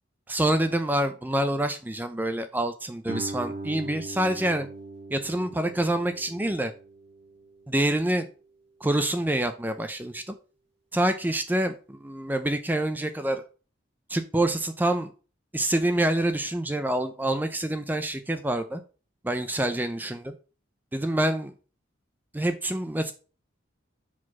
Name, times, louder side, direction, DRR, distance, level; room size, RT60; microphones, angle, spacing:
voice 1, 0.3-4.7 5.1-6.7 7.7-8.3 8.8-10.3 10.9-13.4 14.1-15.1 15.5-18.8 19.2-20.3 20.9-21.5 22.3-23.1, right 1 dB, 10° right, 8 dB, 0.5 m, -26 dB
Guitar, 3.1-8.4, right 2 dB, 30° right, 1.5 m, -40 dB
4.8 x 4.3 x 5.8 m, 0.35 s
head